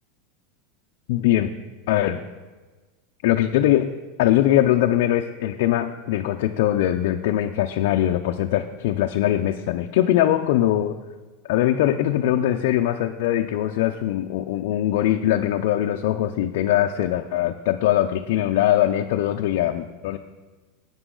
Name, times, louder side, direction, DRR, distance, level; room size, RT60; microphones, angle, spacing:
voice 1, 1.1-1.5 1.9-2.2 3.2-10.9 11.5-20.2, left 12 dB, 70° left, 3 dB, 0.6 m, -21 dB
12.5 x 9.1 x 3.9 m, 1.2 s
supercardioid pair, 140°, 0 cm